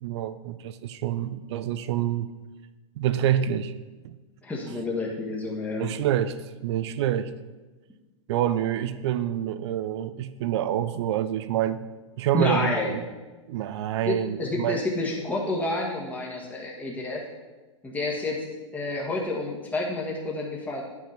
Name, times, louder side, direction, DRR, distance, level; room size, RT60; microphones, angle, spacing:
voice 1, 0.0-2.3 3.0-3.7 4.0-4.1 5.8-6.4 6.6-7.3 8.3-11.8 12.2-13.0 13.5-14.8, right 11 dB, 60° right, 13 dB, 0.6 m, -27 dB
voice 2, 4.4-5.9 12.3-12.9 14.1-17.2 17.8-18.4 18.7-20.8, left 2 dB, 10° left, -2 dB, 1.4 m, -29 dB
9.8 x 6.2 x 4.3 m, 1.2 s
hypercardioid pair, 120°, 16 cm